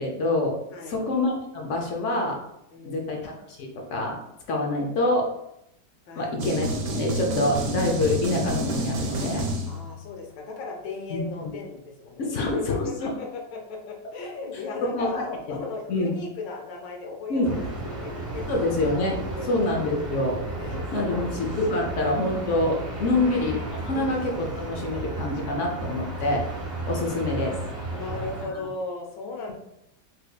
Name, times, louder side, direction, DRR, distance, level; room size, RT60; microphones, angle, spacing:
voice 1, 0.0-0.6 0.9-2.4 2.8-4.2 4.5-5.3 6.2-9.5 11.1-11.5 12.2-13.1 14.8-15.3 15.9-16.1 17.3-17.5 18.5-19.2 19.5-20.4 20.9-23.6 23.8-26.4 26.9-27.6, left 2 dB, 65° left, 1 dB, 0.7 m, -26 dB
voice 2, 0.7-1.0 2.7-3.2 6.1-6.3 9.7-18.5 19.2-19.4 20.5-21.3 21.7-21.9 22.9-23.5 23.9-24.2 27.9-29.5, left 4 dB, 85° left, 1 dB, 1.4 m, -37 dB
sound 1, 6.4-10.1, right 1 dB, 80° right, 1.3 m, -29 dB
sound 2, 17.4-28.5, right 2 dB, 30° right, 1.0 m, -33 dB
3.3 x 3.3 x 2.3 m, 0.81 s
omnidirectional pair, 1.9 m